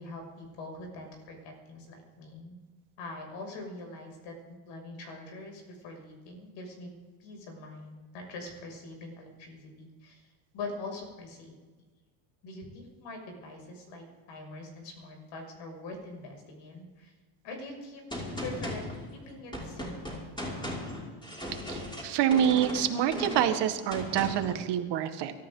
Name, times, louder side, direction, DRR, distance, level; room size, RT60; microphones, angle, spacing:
voice 1, 0.0-2.6 3.0-6.9 7.2-10.2 10.5-11.5 12.4-17.1 17.4-18.0 18.4-18.8 19.1-20.2, left 2 dB, 70° left, 2 dB, 6.5 m, -43 dB
Gunshot gunfire, 18.1-24.6, left 1 dB, 10° left, 5.7 m, -38 dB
voice 2, 21.7-25.3, right 10 dB, 60° right, 7 dB, 1.8 m, -27 dB
24.5 x 13.5 x 3.9 m, 1.3 s
cardioid pair, 130°, 46 cm